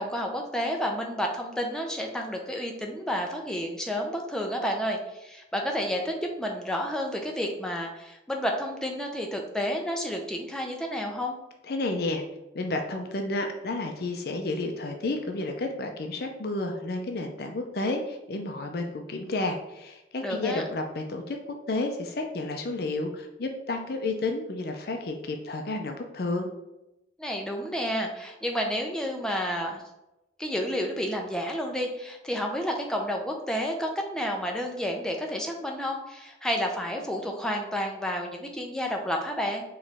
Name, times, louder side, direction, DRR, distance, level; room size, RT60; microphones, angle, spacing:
voice 1, 0.0-11.4 20.2-20.6 27.2-29.8 30.4-39.6, equal, 5° left, 1 dB, 0.5 m, -30 dB
voice 2, 11.7-12.2 12.5-26.5, left 2 dB, 55° left, 4 dB, 0.5 m, -31 dB
4.6 x 3.0 x 3.4 m, 0.94 s
head